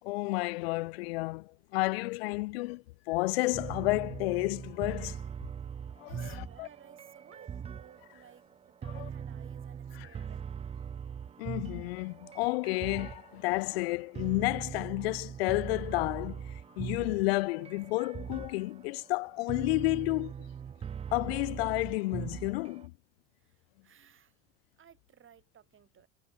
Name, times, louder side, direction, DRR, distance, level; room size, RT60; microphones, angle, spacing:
voice 1, 0.0-5.2 6.0-6.7 8.9-9.1 9.9-10.1 11.4-20.3 21.1-22.9, left 23 dB, 80° left, 0.8 m, -31 dB
sound 1, 3.5-22.9, right 7 dB, 20° right, 0.4 m, -41 dB
voice 2, 6.1-10.8 23.4-24.4 24.8-26.1, right 9 dB, 40° right, 3.1 m, -58 dB
hypercardioid pair, 70°, 30 cm